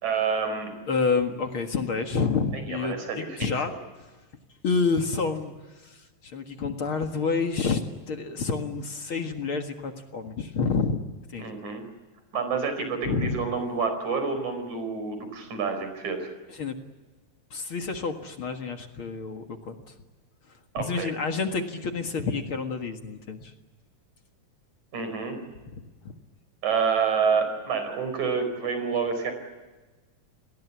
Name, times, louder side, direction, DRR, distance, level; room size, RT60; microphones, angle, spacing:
voice 1, 0.0-0.8 2.7-3.8 11.4-11.8 12.3-16.3 20.7-21.1 24.9-25.4 26.6-29.3, right 5 dB, 75° right, 7 dB, 6.1 m, -28 dB
voice 2, 0.9-3.7 4.6-5.5 5.8-6.0 6.2-7.8 8.1-11.0 11.3-11.4 13.1-13.4 16.6-16.7 17.5-19.7 20.8-23.5, left 4 dB, 50° left, 5 dB, 2.3 m, -28 dB
29.0 x 20.5 x 8.4 m, 1.2 s
omnidirectional pair, 3.3 m